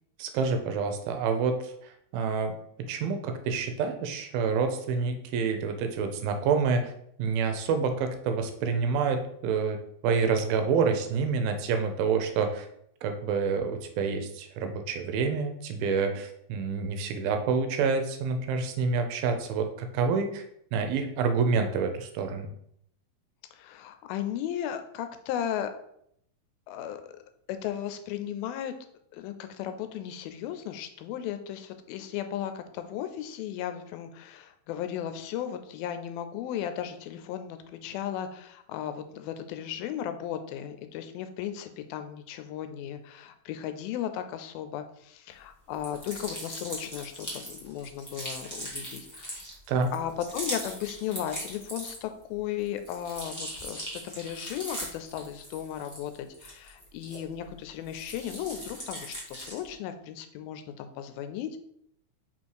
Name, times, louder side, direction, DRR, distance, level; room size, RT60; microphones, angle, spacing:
voice 1, 0.2-2.6 2.9-6.9 7.2-12.7 13.0-20.4 20.7-22.5 49.7-49.9, right 5 dB, 80° right, 6 dB, 2.5 m, -28 dB
voice 2, 23.5-25.7 26.7-27.1 27.5-28.7 29.1-49.4 49.9-61.6, left 10 dB, 85° left, 9 dB, 2.4 m, -36 dB
sound 1, 45.7-52.2 52.6-57.5 57.8-59.7, equal, 15° left, 0.6 m, -40 dB
5.5 x 4.3 x 4.7 m, 0.71 s
omnidirectional pair, 4.2 m